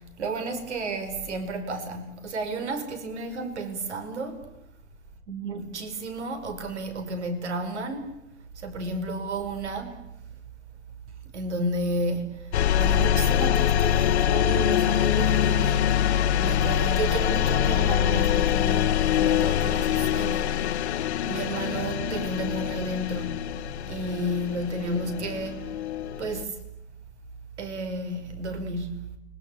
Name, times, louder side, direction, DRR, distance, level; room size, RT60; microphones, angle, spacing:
voice 1, 0.0-4.5 5.3-8.2 8.6-10.1 11.3-20.8 21.3-23.4 23.9-25.7 26.2-26.6 27.6-29.2, right 2 dB, 80° right, 5.4 m, -32 dB
sound 1, 12.5-26.4, left 10 dB, 70° left, 1.4 m, -24 dB
30.0 x 23.0 x 8.5 m
hypercardioid pair, 145°, 34 cm